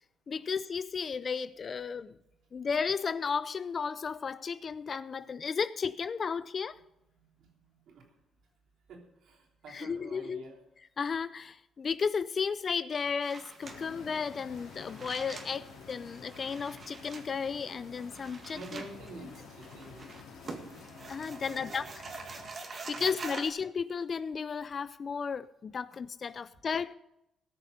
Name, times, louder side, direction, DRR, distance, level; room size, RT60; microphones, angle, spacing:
voice 1, 0.3-2.1 2.5-6.8 9.7-10.4 10.8-18.8 21.1-21.9 22.9-26.9, left 5 dB, 45° left, 15 dB, 0.5 m, -34 dB
voice 2, 8.9-10.6 18.5-20.1 21.3-21.9 22.9-23.3, right 3 dB, 75° right, 1 dB, 3.4 m, -48 dB
sound 1, 13.2-23.5, right 3 dB, 45° right, 1.9 m, -46 dB
sound 2, 13.6-22.5, left 5 dB, 85° left, 2.5 m, -50 dB
18.0 x 6.6 x 6.6 m, 0.85 s
cardioid pair, 90°, 0 cm